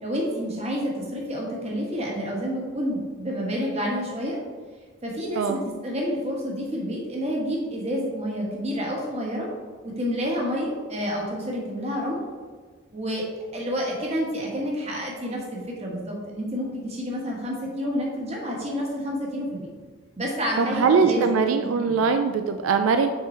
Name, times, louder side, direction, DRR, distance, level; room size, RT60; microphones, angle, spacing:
voice 1, 0.0-4.4 5.0-9.5 9.8-12.2 12.9-13.2 13.5-19.7 20.2-21.3 21.6-22.0, equal, 30° right, -2 dB, 1.2 m, -29 dB
voice 2, 20.6-23.1, right 5 dB, 80° right, 7 dB, 0.3 m, -21 dB
5.9 x 3.8 x 4.2 m, 1.5 s
head